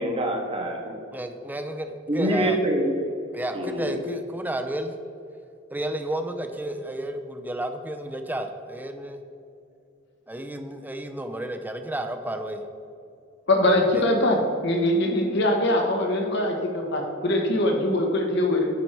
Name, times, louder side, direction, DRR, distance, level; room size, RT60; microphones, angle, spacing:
voice 1, 0.0-0.9 2.1-2.9 3.5-4.0, right 1 dB, 30° right, 2 dB, 1.0 m, -25 dB
voice 2, 1.1-2.6 3.3-4.9 5.7-9.2 10.3-12.6 13.9-14.0, right 1 dB, 10° right, 6 dB, 0.5 m, -32 dB
voice 3, 13.5-18.7, left 1 dB, 65° left, 2 dB, 1.2 m, -22 dB
9.6 x 4.5 x 4.6 m, 2.5 s
head